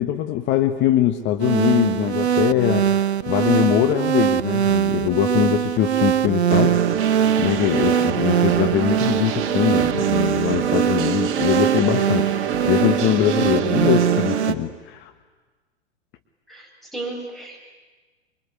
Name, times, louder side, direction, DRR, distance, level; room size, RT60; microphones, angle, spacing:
voice 1, 0.0-2.9 3.3-6.8 7.4-12.3 12.6-15.1, left 11 dB, 35° left, 8 dB, 1.4 m, -22 dB
sound 1, 1.4-14.5, right 9 dB, 75° right, 0.9 m, -22 dB
sound 2, 6.5-14.5, right 8 dB, 35° right, 2.3 m, -25 dB
voice 2, 16.5-17.6, right 2 dB, ahead, 0 dB, 7.3 m, -34 dB
24.5 x 24.0 x 9.9 m, 1.3 s
figure-of-eight pair, 100°, 34 cm